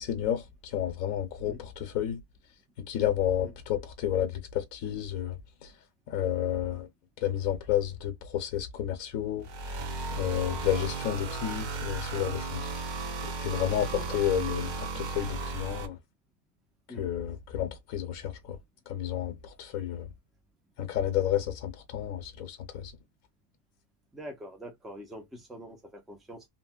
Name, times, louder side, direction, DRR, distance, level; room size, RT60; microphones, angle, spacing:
voice 1, 0.0-2.2 2.8-5.7 6.1-6.9 7.2-9.5 10.1-12.7 13.2-16.0 17.0-18.6 18.9-20.1 20.8-22.9, left 10 dB, 90° left, 1.1 m, -31 dB
sound 1, 9.4-15.9, right 3 dB, 55° right, 0.5 m, -35 dB
voice 2, 24.1-26.4, equal, ahead, 0.6 m, -44 dB
3.1 x 2.7 x 2.3 m
omnidirectional pair, 1.4 m